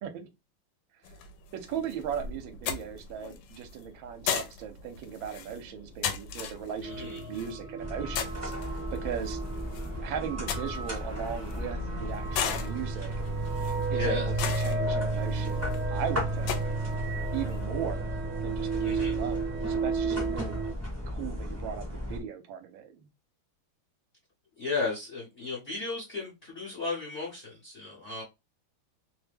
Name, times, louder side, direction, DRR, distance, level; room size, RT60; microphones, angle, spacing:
sound 1, 1.0-17.7, left 7 dB, 75° left, 1.3 m, -38 dB
voice 1, 1.5-9.4 10.0-13.1 13.9-16.6 17.3-18.1 18.4-20.6 21.1-23.1, right 8 dB, 75° right, 1.4 m, -38 dB
voice 2, 6.8-7.2 13.9-14.3 18.8-19.2 24.6-28.2, left 3 dB, 45° left, 0.9 m, -34 dB
sound 2, 6.8-20.7, right 4 dB, 50° right, 0.8 m, -33 dB
sound 3, 7.8-22.2, left 1 dB, 15° right, 0.5 m, -36 dB
3.2 x 2.1 x 3.3 m
omnidirectional pair, 2.2 m